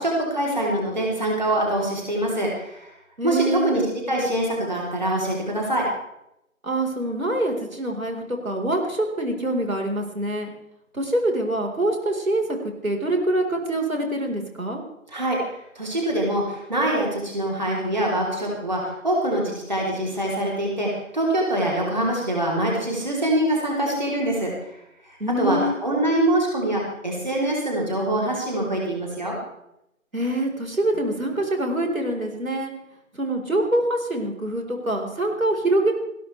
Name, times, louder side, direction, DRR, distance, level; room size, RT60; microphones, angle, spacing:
voice 1, 0.0-2.9 3.2-5.9 15.1-24.8 25.0-29.3, right 1 dB, 30° right, -2 dB, 3.6 m, -24 dB
voice 2, 3.2-3.8 6.6-10.5 10.9-12.6 12.8-14.8 25.2-25.7 30.1-32.7 33.1-35.9, right 1 dB, 70° right, 2 dB, 4.4 m, -25 dB
20.5 x 17.0 x 3.3 m, 0.80 s
figure-of-eight pair, 175°, 42 cm